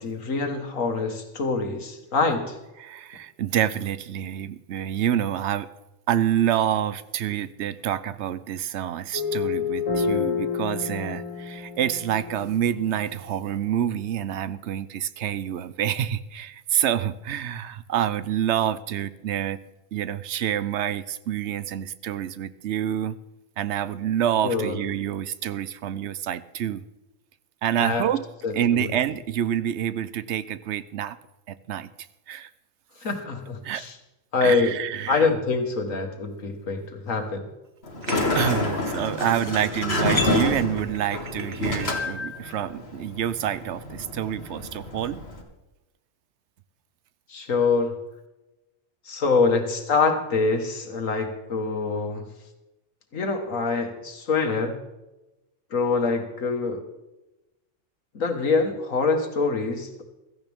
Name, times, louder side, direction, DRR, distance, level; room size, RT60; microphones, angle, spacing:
voice 1, 0.0-2.6 24.4-24.7 27.8-28.0 28.4-28.9 33.0-33.9 34.3-34.7 35.1-37.5 47.3-48.0 49.1-52.2 53.1-54.8 55.7-56.8 58.1-60.0, left 4 dB, 80° left, 5 dB, 2.0 m, -25 dB
voice 2, 2.8-5.7 6.1-19.6 19.9-23.2 23.6-26.8 27.6-28.3 28.5-31.2 31.5-31.9 32.3-32.5 33.6-33.8 34.4-35.3 38.3-45.2, right 10 dB, 65° right, 15 dB, 0.9 m, -27 dB
sound 1, 9.1-13.6, left 6 dB, 25° left, 5.6 m, -29 dB
Sliding door, 37.8-45.4, left 2 dB, 50° left, 2.2 m, -28 dB
sound 2, 38.0-38.5 39.1-39.5 40.0-42.0, right 6 dB, 85° right, 1.5 m, -39 dB
16.0 x 14.0 x 3.6 m, 0.99 s
omnidirectional pair, 1.4 m